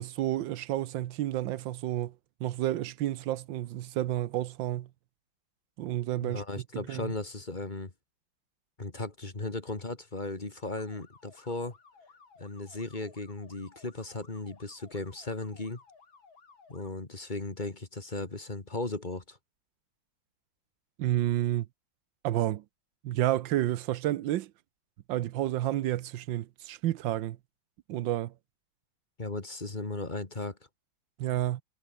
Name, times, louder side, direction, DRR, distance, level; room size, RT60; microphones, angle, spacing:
voice 1, 0.0-2.1 2.4-4.9 5.8-6.4 6.7-7.1 21.0-21.7 22.2-22.6 23.0-24.5 25.1-27.4 27.9-28.3 31.2-31.6, right 13 dB, 70° right, 1.4 m, -30 dB
voice 2, 6.2-7.9 8.8-11.7 12.4-15.8 16.7-19.4 29.2-30.6, left 2 dB, 25° left, 2.1 m, -36 dB
sound 1, 10.8-16.9, left 5 dB, 70° left, 4.1 m, -58 dB
omnidirectional pair, 2.2 m